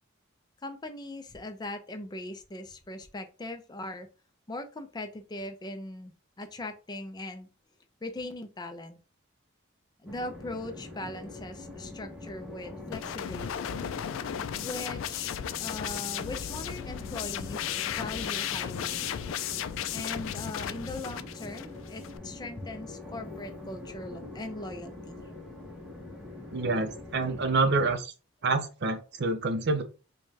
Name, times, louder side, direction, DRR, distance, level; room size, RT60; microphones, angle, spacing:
voice 1, 0.6-4.1 4.5-7.5 8.0-9.0 10.0-13.8 14.6-19.0 19.9-25.2, left 1 dB, 20° left, 7 dB, 0.5 m, -40 dB
Train, 10.1-27.9, left 2 dB, 5° right, 0.9 m, -44 dB
sound 1, 12.9-22.2, left 10 dB, 80° left, 0.3 m, -35 dB
voice 2, 26.5-28.1 28.4-29.8, right 3 dB, 55° right, 8 dB, 0.6 m, -27 dB
4.7 x 2.2 x 2.8 m, 0.33 s
head